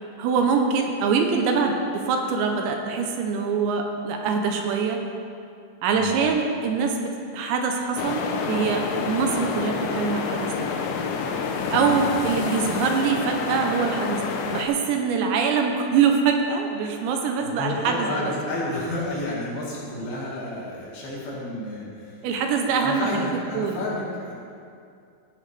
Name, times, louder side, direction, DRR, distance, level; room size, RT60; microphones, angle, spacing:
voice 1, 0.2-5.0 5.8-10.5 11.7-18.3 22.2-23.3 23.6-23.8, right 5 dB, 80° right, 3 dB, 3.0 m, -24 dB
sound 1, 8.0-14.7, left 5 dB, 85° left, 2.9 m, -28 dB
voice 2, 17.4-24.3, left 1 dB, 60° left, -6 dB, 3.6 m, -31 dB
15.5 x 8.6 x 3.3 m, 2.4 s
omnidirectional pair, 5.3 m